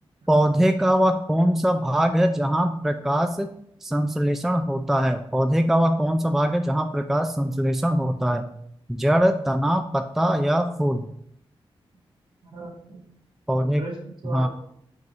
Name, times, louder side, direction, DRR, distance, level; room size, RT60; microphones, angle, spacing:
voice 1, 0.3-3.5 3.8-8.5 8.9-11.1 13.5-13.8 14.3-14.5, equal, 5° right, 7 dB, 0.4 m, -22 dB
voice 2, 12.4-13.0 13.6-14.5, right 2 dB, 60° right, -1 dB, 1.9 m, -37 dB
5.4 x 4.0 x 5.2 m, 0.70 s
wide cardioid pair, 90°, 10 cm